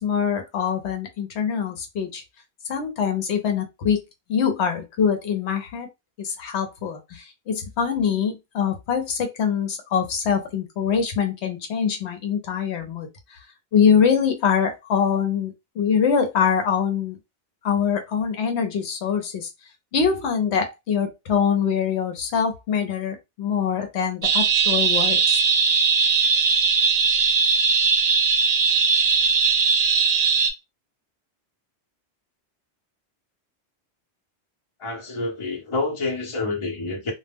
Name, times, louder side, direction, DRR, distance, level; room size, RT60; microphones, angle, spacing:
voice 1, 0.0-2.2 2.7-4.0 4.3-5.9 6.2-13.1 13.7-17.2 17.6-19.5 19.9-25.4, left 7 dB, 75° left, 0.9 m, -24 dB
sound 1, 24.2-30.5, right 5 dB, 60° right, 0.4 m, -19 dB
voice 2, 34.8-37.1, left 3 dB, 30° left, 0.7 m, -28 dB
2.2 x 2.0 x 3.3 m
omnidirectional pair, 1.1 m